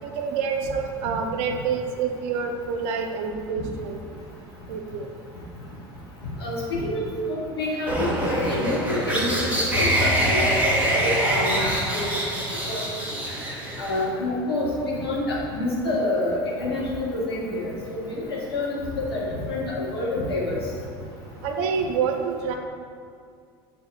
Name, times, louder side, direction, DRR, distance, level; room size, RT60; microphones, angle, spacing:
voice 1, 0.0-4.0 4.7-5.1 21.4-22.5, right 6 dB, 60° right, 4 dB, 0.7 m, -27 dB
voice 2, 6.4-10.5 10.9-12.1 12.7-12.9 13.8-20.6, left 1 dB, 85° left, -5 dB, 1.3 m, -27 dB
sound 1, 7.9-14.0, right 1 dB, 10° right, 1.4 m, -24 dB
7.0 x 3.5 x 4.0 m, 2.2 s
hypercardioid pair, 75°, 13 cm